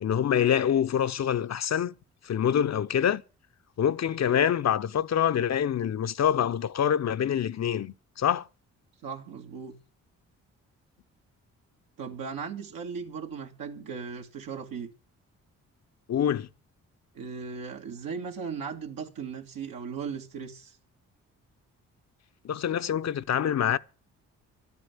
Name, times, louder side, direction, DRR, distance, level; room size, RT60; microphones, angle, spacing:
voice 1, 0.0-1.9 2.2-3.2 3.8-8.5 16.1-16.5 22.4-23.8, left 9 dB, 50° left, 0.7 m, -25 dB
voice 2, 9.0-9.8 12.0-14.9 17.1-20.8, right 6 dB, 75° right, 2.2 m, -37 dB
12.0 x 8.3 x 9.7 m
supercardioid pair, 60°, 34 cm